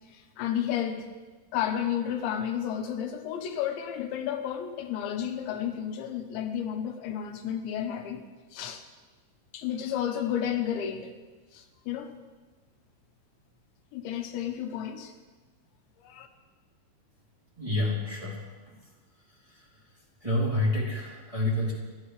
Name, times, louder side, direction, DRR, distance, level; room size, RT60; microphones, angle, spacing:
voice 1, 0.1-1.1 1.5-8.2 8.5-8.8 9.5-11.1 11.5-12.1 13.9-15.1 16.0-16.3, left 9 dB, 80° left, 5 dB, 3.3 m, -32 dB
voice 2, 17.6-18.4 18.7-18.8 19.4-19.7 20.2-21.7, left 1 dB, 10° right, -7 dB, 2.8 m, -28 dB
29.5 x 12.0 x 3.3 m, 1.3 s
omnidirectional pair, 5.3 m